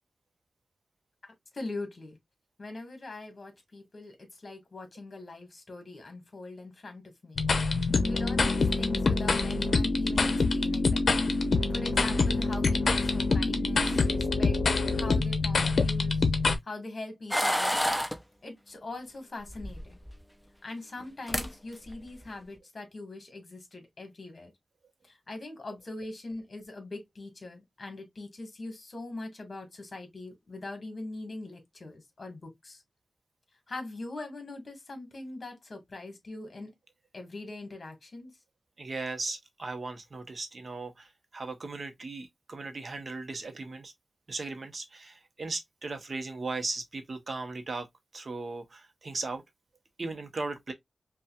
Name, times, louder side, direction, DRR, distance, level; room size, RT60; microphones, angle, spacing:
voice 1, 1.5-2.2 2.6-7.5 8.0-11.1 11.7-14.6 14.9-16.3 16.6-17.8 18.4-20.0 20.6-24.5 25.0-32.8 33.7-36.7 37.1-38.3, left 2 dB, 45° left, 1.7 m, -42 dB
sound 1, 7.4-16.6, left 3 dB, 65° left, 0.7 m, -26 dB
sound 2, 17.3-18.2 19.5-20.2 21.0-21.1 21.3-21.5 21.9-22.2, equal, ahead, 0.6 m, -28 dB
voice 2, 38.8-43.9 44.3-47.9 48.1-49.4 50.0-50.7, right 3 dB, 50° right, 0.9 m, -37 dB
5.3 x 2.4 x 2.3 m
wide cardioid pair, 115°, 0 cm